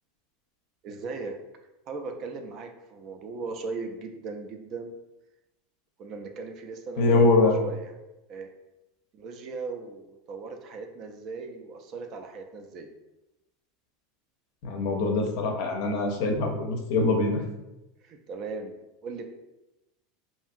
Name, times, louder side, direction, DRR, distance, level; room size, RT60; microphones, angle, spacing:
voice 1, 0.8-1.3 1.9-4.9 6.0-7.9 8.3-8.5 9.1-12.9 18.0-19.2, right 4 dB, 40° right, 4 dB, 0.3 m, -38 dB
voice 2, 7.0-7.6 14.6-17.4, left 3 dB, 60° left, 2 dB, 0.5 m, -23 dB
2.7 x 2.7 x 2.4 m, 0.97 s
supercardioid pair, 145°, 0 cm